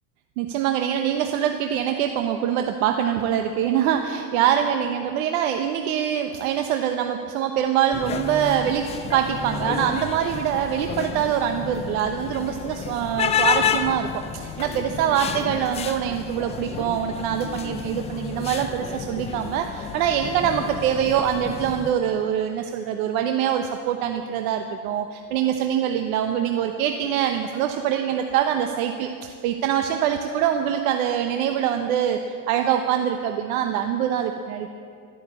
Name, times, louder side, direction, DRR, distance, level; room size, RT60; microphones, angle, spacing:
voice 1, 0.4-32.2 32.5-34.7, right 9 dB, 75° right, 5 dB, 1.1 m, -24 dB
sound 1, 7.9-21.9, left 8 dB, 15° left, 0.3 m, -30 dB
13.5 x 11.5 x 8.3 m, 2.3 s
supercardioid pair, 140°, 42 cm